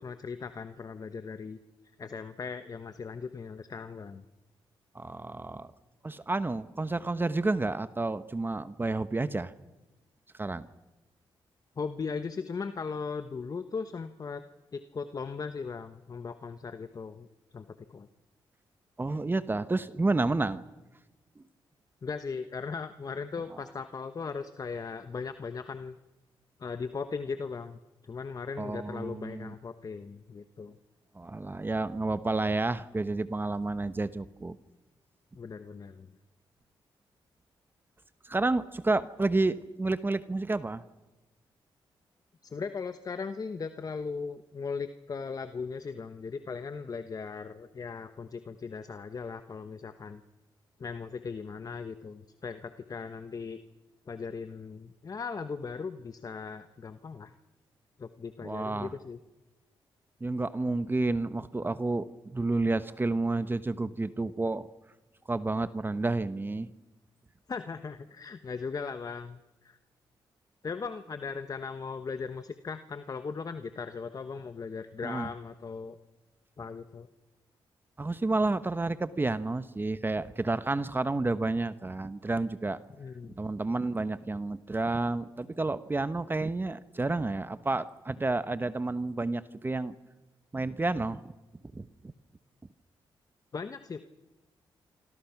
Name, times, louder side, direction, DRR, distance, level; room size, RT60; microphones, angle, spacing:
voice 1, 0.0-1.6 2.0-4.2 11.8-14.4 14.7-17.3 17.5-18.1 22.0-26.0 26.6-30.8 35.3-36.1 42.4-50.2 50.8-53.6 54.1-57.3 58.0-59.2 67.5-69.8 70.6-76.0 76.6-77.1 83.0-83.4 93.5-94.0, left 5 dB, 40° left, 10 dB, 1.1 m, -38 dB
voice 2, 4.9-5.7 6.0-9.5 10.4-10.7 19.0-20.6 21.4-21.5 28.6-29.5 31.1-34.6 38.2-40.8 58.4-58.9 60.2-64.7 65.3-66.7 75.0-75.3 78.0-82.8 83.4-89.9 90.5-91.2 91.7-91.9, right 2 dB, 25° right, 13 dB, 1.0 m, -30 dB
26.0 x 26.0 x 5.9 m, 1.1 s
cardioid pair, 75°, 9 cm